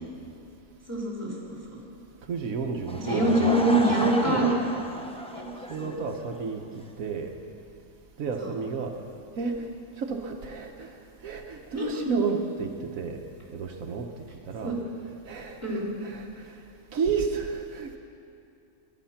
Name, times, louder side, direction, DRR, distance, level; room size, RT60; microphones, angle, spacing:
voice 1, 0.9-1.8 3.0-4.5 5.3-5.5 5.8-6.0 8.4-8.6 11.7-12.1 14.6-14.8 15.6-15.9, right 1 dB, 10° right, -4 dB, 3.5 m, -25 dB
voice 2, 2.3-3.5 4.0-4.5 5.7-7.3 8.2-8.9 9.3-9.7 10.0-11.0 11.2-13.2 13.5-14.1 14.5-14.8 15.3-16.6 16.9-18.0, right 5 dB, 85° right, 3 dB, 1.4 m, -32 dB
Laughter / Crowd, 2.8-6.4, left 1 dB, 5° left, 0.6 m, -33 dB
22.5 x 9.7 x 5.8 m, 2.5 s
omnidirectional pair, 1.4 m